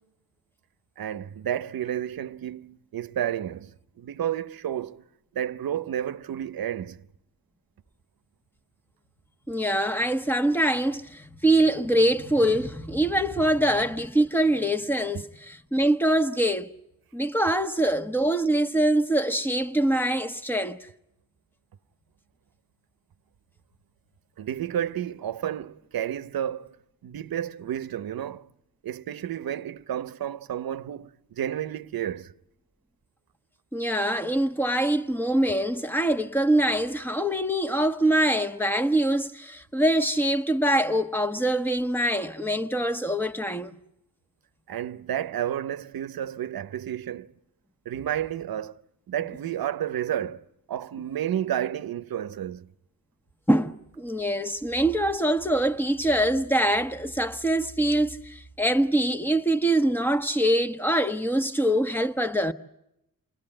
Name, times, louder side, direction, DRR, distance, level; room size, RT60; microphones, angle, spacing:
voice 1, 1.0-5.0 5.3-7.1 24.4-26.8 27.0-28.5 28.8-32.3 44.7-47.3 47.8-48.8 49.1-52.7, right 10 dB, 85° right, 0.9 m, -31 dB
voice 2, 9.5-16.7 17.1-20.8 33.7-43.8 53.5-62.5, right 1 dB, 5° left, 1.3 m, -24 dB
29.5 x 22.5 x 8.9 m
wide cardioid pair, 120°, 35 cm